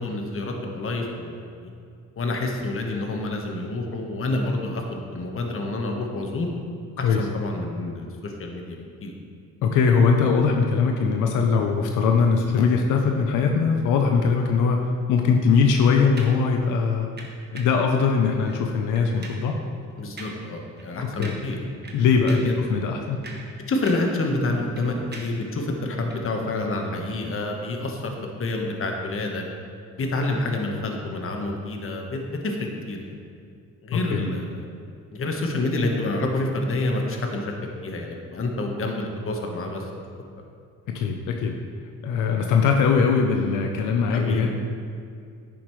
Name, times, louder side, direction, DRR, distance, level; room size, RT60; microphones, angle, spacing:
voice 1, 0.0-1.7 2.2-6.5 7.0-9.1 20.0-21.6 22.3-22.8 23.7-28.1 28.4-29.4 30.0-33.1 33.8-34.7 35.1-37.6 37.8-40.0 44.1-44.5, left 2 dB, 45° left, 2 dB, 1.3 m, -28 dB
voice 2, 9.6-17.1 17.5-19.6 21.2-21.4 21.9-22.4 22.7-23.2 33.9-34.2 40.9-41.6 42.0-44.5, left 5 dB, 90° left, 3 dB, 0.7 m, -21 dB
sound 1, 16.2-16.5 17.2-17.8 18.4-18.6 19.0-19.5 20.2-20.5 20.8-20.9 21.2-21.6 21.8-22.6 23.0-24.2 24.5-25.5 26.1-26.2, right 2 dB, 35° right, 1.2 m, -42 dB
10.0 x 7.1 x 3.2 m, 2.3 s
cardioid pair, 90°, 30 cm